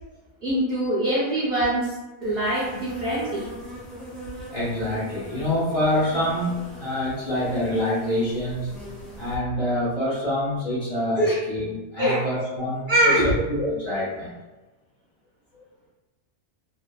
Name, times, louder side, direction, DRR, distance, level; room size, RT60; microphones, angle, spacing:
voice 1, 0.4-1.9 2.2-3.5 11.2-11.4 12.0-12.2 12.9-13.3, right 1 dB, 50° right, -7 dB, 0.9 m, -23 dB
Insect, 2.2-9.4, equal, ahead, 0.4 m, -40 dB
voice 2, 4.5-8.7 9.2-14.3, left 1 dB, 45° left, -8 dB, 1.0 m, -26 dB
2.7 x 2.6 x 2.3 m, 1.1 s
omnidirectional pair, 1.5 m